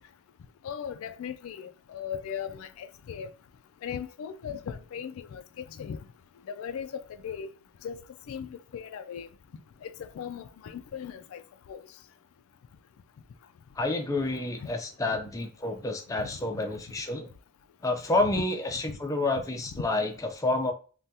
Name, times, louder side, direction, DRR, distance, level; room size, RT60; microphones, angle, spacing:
voice 1, 0.6-3.3 3.8-6.0 6.5-7.5 7.8-8.0 8.3-9.3 9.8-11.4 11.7-11.8 14.3-14.4 14.6-14.7 16.2-16.3 18.3-18.4 19.7-19.8, left 7 dB, 80° left, 0.3 m, -38 dB
voice 2, 13.8-17.3 17.8-20.7, left 2 dB, 15° left, 0.4 m, -29 dB
3.3 x 2.3 x 2.7 m
head